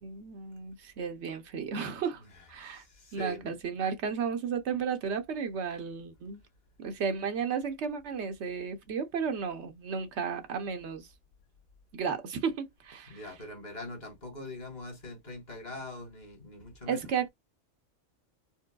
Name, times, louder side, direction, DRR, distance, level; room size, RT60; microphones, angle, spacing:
voice 1, 0.0-2.2 2.5-2.8 3.1-6.4 6.8-11.1 11.9-13.2 16.9-17.3, right 6 dB, 70° right, 0.9 m, -33 dB
voice 2, 2.2-3.5 13.1-17.1, left 2 dB, 35° left, 1.4 m, -43 dB
4.5 x 2.1 x 2.2 m
omnidirectional pair, 1.3 m